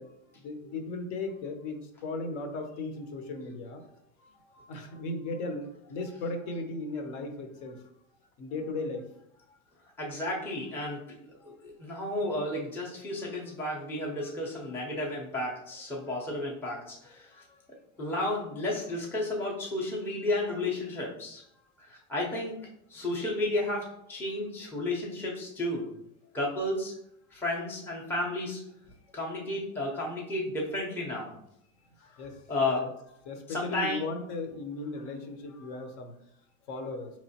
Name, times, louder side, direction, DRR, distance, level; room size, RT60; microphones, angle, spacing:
voice 1, 0.0-7.8 8.4-9.1 9.5-9.6 11.4-11.6 17.3-17.6 18.0-18.1 32.0-32.4 33.3-36.1 36.7-37.1, left 3 dB, 50° left, 6 dB, 0.8 m, -37 dB
voice 2, 10.0-11.0 11.4-17.4 18.0-21.4 21.8-22.6 22.9-25.9 26.3-26.9 27.3-28.6 29.1-31.3 32.5-32.9 33.5-34.0, left 1 dB, 5° left, -3 dB, 0.6 m, -32 dB
4.7 x 3.0 x 2.8 m, 0.75 s
supercardioid pair, 135°, 42 cm